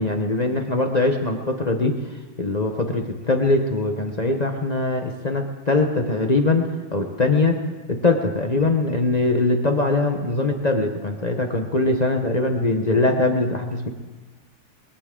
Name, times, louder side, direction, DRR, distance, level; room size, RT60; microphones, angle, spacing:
voice 1, 0.0-7.6 7.9-13.9, left 2 dB, 50° left, 3 dB, 0.4 m, -22 dB
21.5 x 15.0 x 3.7 m, 1.3 s
omnidirectional pair, 2.3 m